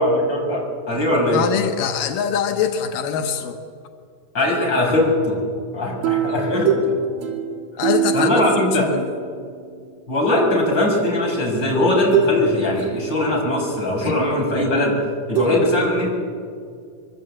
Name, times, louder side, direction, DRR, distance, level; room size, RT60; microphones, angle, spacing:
voice 1, 0.0-1.5 4.3-5.4 5.7-6.7 8.1-8.9 10.1-15.0 15.3-16.1, left 1 dB, 30° left, -2 dB, 6.9 m, -20 dB
voice 2, 1.3-3.6 7.8-9.1 14.0-14.2, left 8 dB, 90° left, 5 dB, 2.9 m, -23 dB
sound 1, 6.0-9.6 11.0-11.1 12.1-12.4 12.7-13.6 15.4-15.5, right 6 dB, 70° right, 4.3 m, -23 dB
25.0 x 23.5 x 8.8 m, 2.2 s
omnidirectional pair, 3.8 m